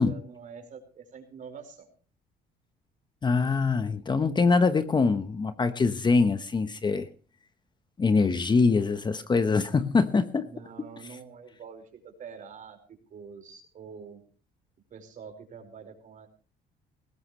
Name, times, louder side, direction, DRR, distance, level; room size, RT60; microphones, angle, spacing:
voice 1, 0.0-1.9 10.4-12.8 13.1-14.2 14.9-16.3, right 6 dB, 50° right, 6 dB, 4.9 m, -45 dB
voice 2, 3.2-7.1 8.0-10.5, left 4 dB, 25° left, 11 dB, 1.1 m, -24 dB
19.5 x 16.5 x 3.2 m, 0.37 s
cardioid pair, 110°, 17 cm